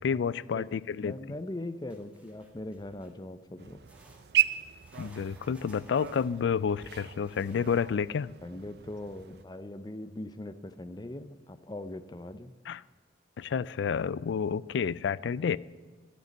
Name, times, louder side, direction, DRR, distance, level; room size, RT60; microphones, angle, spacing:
voice 1, 0.0-1.2 5.0-8.3 12.7-12.8 13.4-15.6, left 6 dB, 85° left, 21 dB, 0.3 m, -30 dB
voice 2, 1.0-3.8 8.4-12.5, left 1 dB, 20° left, 11 dB, 0.5 m, -40 dB
sound 1, 1.9-3.3 3.8-8.2 11.4-11.5 11.9-12.0 12.7-12.8, right 1 dB, 5° right, 1.5 m, -59 dB
sound 2, 3.6-9.4, right 11 dB, 65° right, 0.4 m, -35 dB
12.0 x 6.7 x 9.4 m, 1.3 s
head